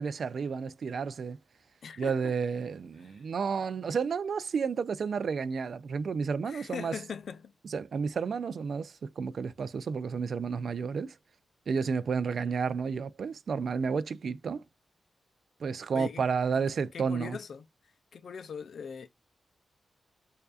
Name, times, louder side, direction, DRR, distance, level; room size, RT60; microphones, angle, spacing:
voice 1, 0.0-1.4 2.0-6.9 7.6-11.1 11.7-14.6 15.6-17.4, right 5 dB, 60° right, 0.3 m, -31 dB
voice 2, 1.8-2.3 3.0-3.2 6.4-7.5 15.9-16.2 16.9-17.6 18.1-19.1, left 6 dB, 70° left, 0.5 m, -40 dB
4.6 x 2.5 x 2.4 m
wide cardioid pair, 120°, 0 cm